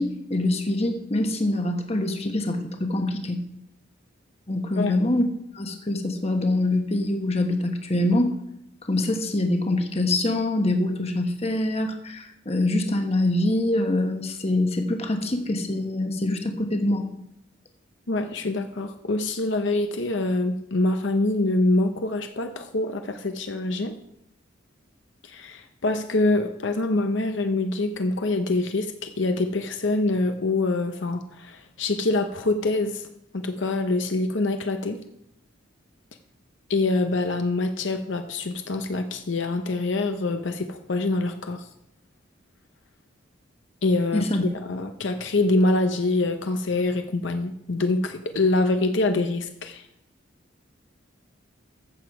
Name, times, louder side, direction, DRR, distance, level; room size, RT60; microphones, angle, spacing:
voice 1, 0.0-3.4 4.5-5.3 5.5-8.3 8.9-17.0 44.1-44.4, left 1 dB, 30° left, 5 dB, 1.2 m, -24 dB
voice 2, 18.1-24.0 25.2-33.0 33.3-35.0 36.7-41.7 43.8-44.3 44.6-49.8, left 2 dB, 70° left, 6 dB, 0.8 m, -25 dB
14.0 x 7.1 x 4.8 m, 0.80 s
head